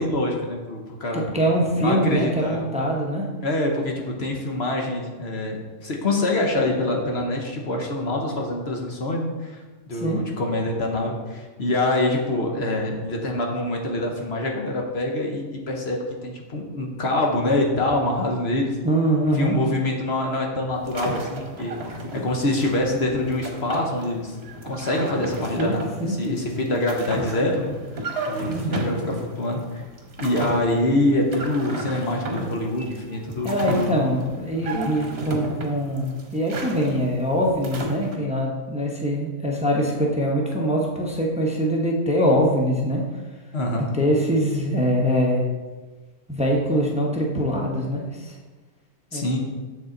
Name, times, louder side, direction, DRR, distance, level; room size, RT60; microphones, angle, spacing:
voice 1, 0.0-1.3 1.7-2.6 3.4-9.6 9.9-18.8 19.3-24.3 24.6-27.7 28.3-29.8 30.2-33.9 43.5-43.9 49.1-49.4, left 1 dB, 45° left, 1 dB, 1.2 m, -25 dB
voice 2, 1.1-3.3 9.9-10.2 18.8-19.6 25.6-26.1 28.5-28.8 33.4-43.0 43.9-45.4 46.3-48.3 49.1-49.4, equal, 5° right, -1 dB, 0.7 m, -23 dB
sound 1, 20.7-38.1, right 1 dB, 45° right, 1.3 m, -33 dB
7.1 x 6.8 x 3.9 m, 1.3 s
omnidirectional pair, 1.7 m